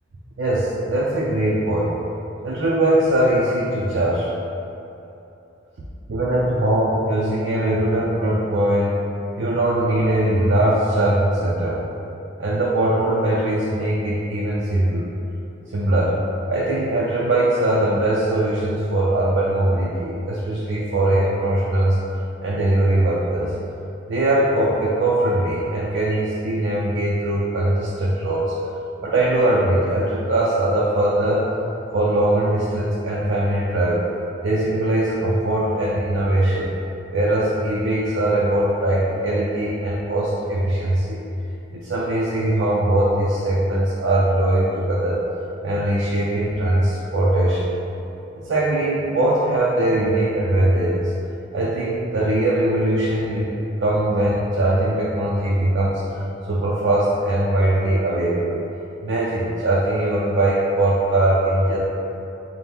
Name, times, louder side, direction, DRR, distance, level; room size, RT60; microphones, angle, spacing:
voice 1, 0.4-1.9 2.4-4.3 6.1-9.0 9.4-11.8 12.4-15.1 15.7-16.2 16.5-22.0 22.4-23.5 24.1-28.5 29.0-31.4 31.9-34.1 34.4-36.7 37.1-41.2 41.7-45.2 45.6-47.7 48.4-51.1 51.5-58.6 59.0-61.8, right 1 dB, 75° right, -7 dB, 0.4 m, -21 dB
3.5 x 2.1 x 4.2 m, 2.9 s
head